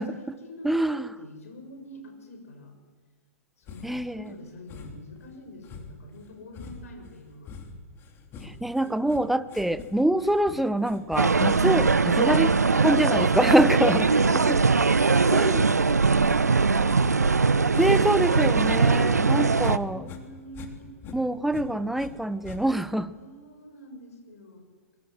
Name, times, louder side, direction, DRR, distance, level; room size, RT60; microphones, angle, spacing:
voice 1, 0.0-0.8 1.2-2.8 3.6-7.6 12.6-13.3 13.9-14.6 14.9-17.0 19.1-20.9 23.1-24.7, left 1 dB, 65° left, 4 dB, 7.1 m, -45 dB
voice 2, 0.6-1.1 3.8-4.3 8.4-12.5 12.8-14.1 15.3-15.6 17.8-20.1 21.1-23.1, right 1 dB, ahead, 15 dB, 0.8 m, -25 dB
sound 1, 3.7-4.1 4.7-5.2 5.6-18.3 18.6-19.8 20.0-22.1 22.4-22.9, left 4 dB, 25° left, 3.1 m, -45 dB
sound 2, 11.2-19.8, right 4 dB, 85° right, 0.8 m, -21 dB
23.5 x 22.5 x 7.9 m, 1.5 s
figure-of-eight pair, 115°, 9 cm